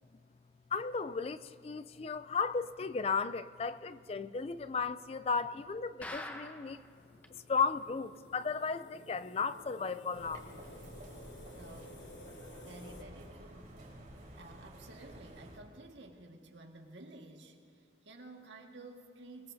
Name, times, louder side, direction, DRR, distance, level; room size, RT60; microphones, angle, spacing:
voice 1, 0.7-6.8 7.5-10.5, left 5 dB, 30° left, 0.3 m, -35 dB
sound 1, 6.0-6.9 7.2-7.3 7.6-7.7 8.2-8.3, left 1 dB, 10° left, 0.8 m, -44 dB
sound 2, 6.7-13.0, left 1 dB, 75° left, 1.3 m, -54 dB
sound 3, 10.1-15.6, right 1 dB, 45° right, 4.2 m, -51 dB
voice 2, 11.5-12.1 12.6-13.8 14.4-19.5, right 2 dB, 80° right, 1.7 m, -52 dB
23.0 x 20.5 x 2.7 m
head